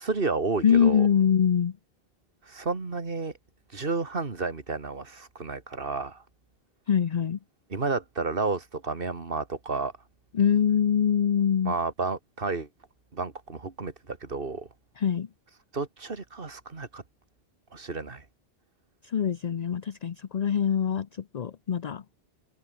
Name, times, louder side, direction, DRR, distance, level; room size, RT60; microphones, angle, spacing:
voice 1, 0.0-1.1 2.4-3.3 3.7-6.2 7.7-9.9 11.7-12.7 13.1-14.7 15.7-17.0 17.7-18.3, right 3 dB, 60° right, 2.3 m, -31 dB
voice 2, 0.6-1.7 6.9-7.4 10.3-11.7 15.0-15.3 19.0-22.0, left 8 dB, 45° left, 0.7 m, -24 dB
omnidirectional pair, 1.1 m